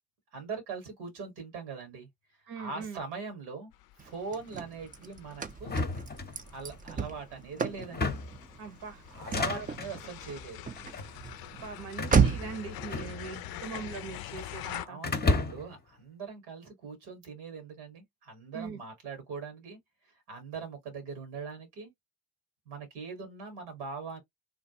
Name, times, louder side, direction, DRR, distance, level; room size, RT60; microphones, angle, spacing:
voice 1, 0.3-2.1 2.6-3.7 4.0-5.7 6.5-8.1 9.1-10.6 13.0-13.1 14.7-19.8 20.0-21.9 22.6-24.2, right 5 dB, 85° right, 1.4 m, -41 dB
voice 2, 2.5-3.0 8.6-9.1 9.5-9.7 11.6-15.0 18.5-18.8, right 5 dB, 60° right, 1.0 m, -41 dB
sound 1, 3.7-14.9, left 14 dB, 55° left, 0.5 m, -45 dB
Car / Slam, 4.0-12.7, right 6 dB, 20° right, 0.5 m, -33 dB
sound 2, 5.6-6.8 7.8-8.5 9.1-10.0 10.8-11.1 12.0-13.5 13.8-14.5 15.0-15.8, left 3 dB, 20° left, 0.7 m, -32 dB
3.3 x 2.2 x 2.7 m
hypercardioid pair, 45°, 44 cm